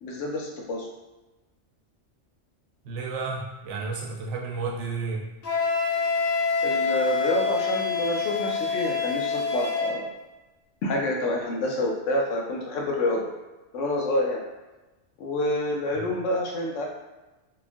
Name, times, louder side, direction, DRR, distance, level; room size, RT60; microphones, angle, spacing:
voice 1, 0.0-0.9 6.6-10.1 10.8-13.3 13.7-14.4 15.2-16.9, left 1 dB, 85° left, -1 dB, 1.0 m, -28 dB
voice 2, 2.8-5.2 15.9-16.0, right 4 dB, 80° right, -1 dB, 0.9 m, -32 dB
Wind instrument woodwind instrument, 5.4-10.0, left 5 dB, 60° left, 0.8 m, -26 dB
2.8 x 2.3 x 2.5 m, 1.1 s
omnidirectional pair, 1.2 m